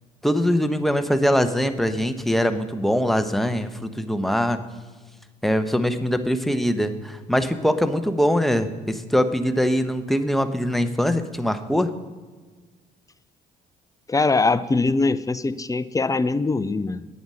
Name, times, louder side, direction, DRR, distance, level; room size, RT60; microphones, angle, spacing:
voice 1, 0.2-4.6 5.4-11.9, equal, ahead, 9 dB, 1.0 m, -22 dB
voice 2, 14.1-17.1, left 3 dB, 15° left, 14 dB, 0.6 m, -22 dB
9.3 x 8.9 x 6.3 m, 1.4 s
hypercardioid pair, 55°, 20 cm